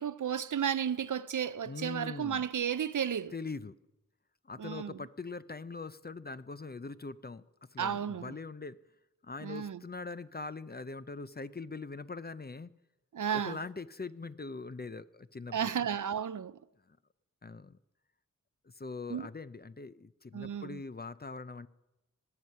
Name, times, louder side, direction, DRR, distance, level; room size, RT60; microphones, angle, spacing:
voice 1, 0.0-3.3 4.6-5.0 7.8-8.3 9.4-9.8 13.1-13.6 15.5-16.6 19.1-19.3 20.3-20.8, right 8 dB, 65° right, 0.5 m, -33 dB
voice 2, 1.6-2.5 3.3-3.7 4.4-8.8 9.2-12.7 13.3-15.7 16.9-17.0 17.4-17.8 18.6-21.7, left 4 dB, 30° left, 0.4 m, -42 dB
19.5 x 7.9 x 5.5 m
wide cardioid pair, 60°, 33 cm